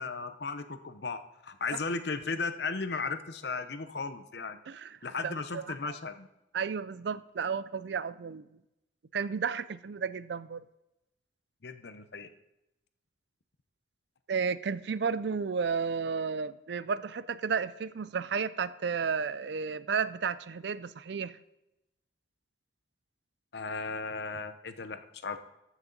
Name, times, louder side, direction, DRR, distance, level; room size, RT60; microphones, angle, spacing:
voice 1, 0.0-4.6 5.0-6.3 11.6-12.3 23.5-25.4, left 4 dB, 65° left, 10 dB, 0.7 m, -36 dB
voice 2, 5.2-5.9 6.5-8.5 9.1-10.6 14.3-21.3, right 6 dB, 70° right, 16 dB, 0.4 m, -32 dB
14.5 x 6.2 x 3.9 m, 0.90 s
head